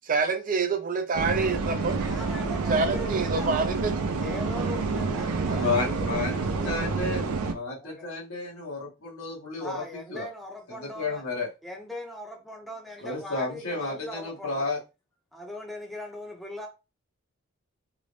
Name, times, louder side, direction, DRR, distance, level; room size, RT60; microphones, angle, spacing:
voice 1, 0.1-2.0 2.7-3.9 5.5-5.6, right 4 dB, 40° right, 0.4 m, -27 dB
sound 1, 1.1-7.5, right 4 dB, 85° right, 0.5 m, -28 dB
sound 2, 1.3-5.8, right 1 dB, 60° right, 1.1 m, -49 dB
voice 2, 2.0-3.5 4.1-6.8 7.6-8.1 9.6-11.2 11.6-14.7 15.3-16.7, left 1 dB, ahead, 0.7 m, -40 dB
voice 3, 5.6-7.2 7.5-9.8 10.1-10.3 10.8-11.5 13.0-14.8, left 3 dB, 75° left, 1.4 m, -31 dB
3.6 x 2.1 x 3.4 m
head